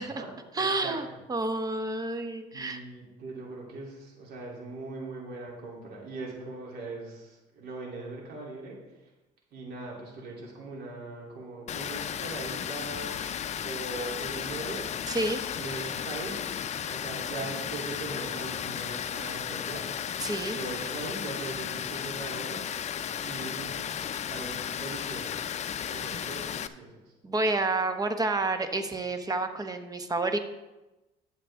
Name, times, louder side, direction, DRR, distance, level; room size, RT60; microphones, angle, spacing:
voice 1, 0.0-1.0 2.5-8.8 9.5-13.2 13.6-14.9 15.6-16.4 16.9-19.9 20.5-22.6 23.2-23.9 24.2-25.5 25.9-27.0, right 3 dB, 75° right, -3 dB, 3.3 m, -40 dB
voice 2, 0.5-2.8 15.1-15.4 20.2-20.6 26.1-26.2 27.2-30.4, right 2 dB, 20° right, 8 dB, 0.9 m, -29 dB
Water, 11.7-26.7, left 9 dB, 40° left, 0.5 m, -34 dB
11.5 x 7.5 x 3.7 m, 1.0 s
cardioid pair, 110°, 17 cm